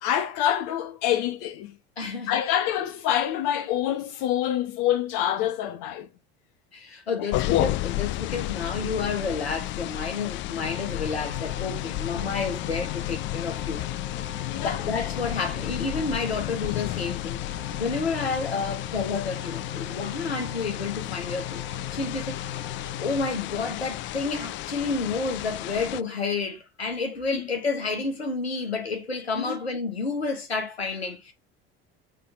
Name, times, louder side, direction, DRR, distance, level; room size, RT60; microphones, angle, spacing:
voice 1, 0.0-1.8 2.3-6.1 7.2-7.3 14.5-14.9 27.3-27.4 29.4-29.6, left 11 dB, 60° left, 0.8 m, -26 dB
voice 2, 2.0-2.4 6.7-13.8 14.6-17.4 17.8-21.6 21.9-22.4 23.0-31.3, left 4 dB, 90° left, 1.5 m, -30 dB
sound 1, 7.3-26.0, left 16 dB, 40° left, 0.4 m, -32 dB
sound 2, 10.6-23.3, left 7 dB, 90° right, 1.6 m, -39 dB
7.5 x 3.4 x 5.3 m
figure-of-eight pair, 65°, 31 cm